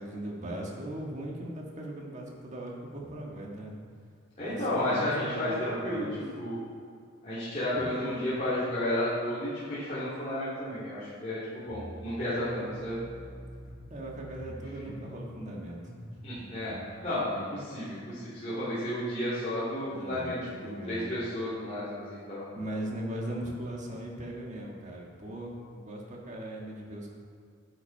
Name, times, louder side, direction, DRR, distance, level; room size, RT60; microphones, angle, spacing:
voice 1, 0.0-3.8 4.4-6.2 7.7-8.1 13.9-15.9 19.9-21.2 22.5-27.1, right 1 dB, 35° right, -1 dB, 1.6 m, -39 dB
voice 2, 4.4-6.1 6.3-6.6 7.2-13.0 14.8-14.9 16.2-16.7 17.0-20.4 20.6-22.4, left 1 dB, 35° left, -12 dB, 2.8 m, -32 dB
sound 1, 11.7-17.0, equal, 75° left, 2.6 m, -46 dB
10.5 x 8.4 x 4.6 m, 2.2 s
head